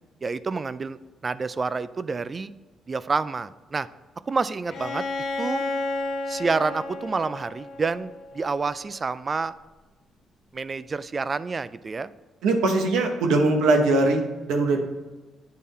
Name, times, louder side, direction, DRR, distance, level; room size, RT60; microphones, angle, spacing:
voice 1, 0.2-1.0 1.2-2.5 2.9-3.9 4.3-5.0 5.4-5.6 6.3-9.5 10.5-12.1, right 4 dB, 35° right, 15 dB, 0.3 m, -28 dB
Bowed string instrument, 4.7-8.5, left 2 dB, 70° left, 1.1 m, -32 dB
voice 2, 12.4-14.2 14.5-14.8, right 2 dB, 90° right, 4 dB, 1.1 m, -20 dB
9.4 x 3.6 x 4.2 m, 1.2 s
cardioid pair, 90°, 0 cm